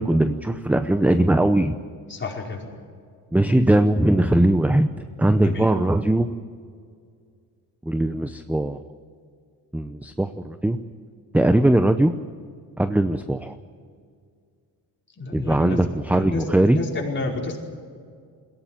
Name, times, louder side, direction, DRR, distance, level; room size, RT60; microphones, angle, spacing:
voice 1, 0.0-1.8 3.3-6.3 7.9-8.8 9.7-10.8 11.3-12.1 12.8-13.6 15.3-16.8, right 1 dB, 5° right, 10 dB, 0.7 m, -20 dB
voice 2, 2.1-2.7 5.4-5.7 15.2-17.6, left 3 dB, 30° left, -1 dB, 5.0 m, -30 dB
21.0 x 17.0 x 9.2 m, 2.2 s
cardioid pair, 115°, 40 cm